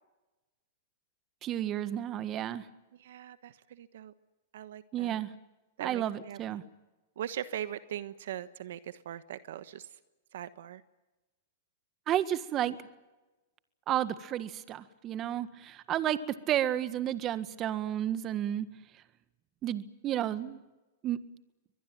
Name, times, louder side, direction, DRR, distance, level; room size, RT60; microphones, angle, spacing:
voice 1, 1.4-2.7 4.9-5.3 5.8-6.6 12.1-12.8 13.9-18.7 19.6-20.6 21.0-21.2, right 11 dB, 35° right, 13 dB, 1.7 m, -32 dB
voice 2, 3.0-4.1 4.5-5.2 5.8-6.6 7.2-9.9 10.3-10.8, right 11 dB, 70° right, 13 dB, 1.2 m, -40 dB
24.0 x 21.0 x 9.3 m, 1.1 s
hypercardioid pair, 120°, 0 cm